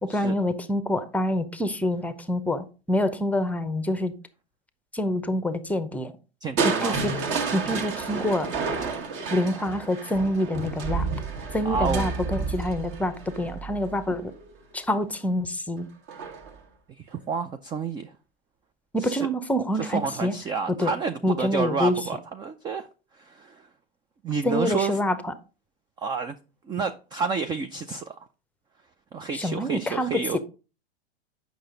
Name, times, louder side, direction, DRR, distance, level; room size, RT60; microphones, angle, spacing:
voice 1, 0.0-4.1 4.9-6.1 6.6-7.1 7.5-8.5 9.3-11.1 11.5-14.3 14.7-15.9 18.9-20.3 20.8-20.9 21.2-22.0 24.4-25.3 29.3-30.4, left 1 dB, 5° left, 0.7 m, -26 dB
voice 2, 6.4-7.0 11.6-12.1 17.0-18.1 19.0-19.3 19.8-22.9 23.1-23.7 24.2-25.0 26.0-26.4 26.6-28.2 29.1-30.4, right 5 dB, 15° right, 0.3 m, -30 dB
Crushing, 6.6-14.5 16.1-16.6 17.1-17.2, right 4 dB, 40° right, 1.4 m, -30 dB
7.8 x 5.9 x 3.8 m
hypercardioid pair, 105°, 32 cm